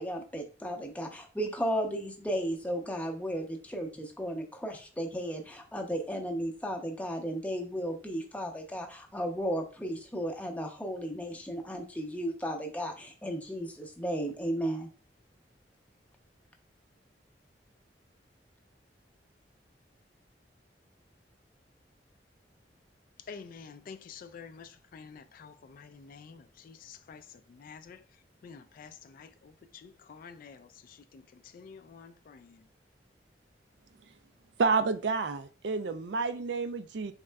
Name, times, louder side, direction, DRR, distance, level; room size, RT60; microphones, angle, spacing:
voice 1, 0.0-14.9, equal, 10° left, 0.6 m, -34 dB
voice 2, 23.2-28.1 28.4-32.7, left 6 dB, 50° left, 0.3 m, -49 dB
voice 3, 34.6-37.1, right 4 dB, 70° right, 0.4 m, -29 dB
4.1 x 3.6 x 2.2 m
head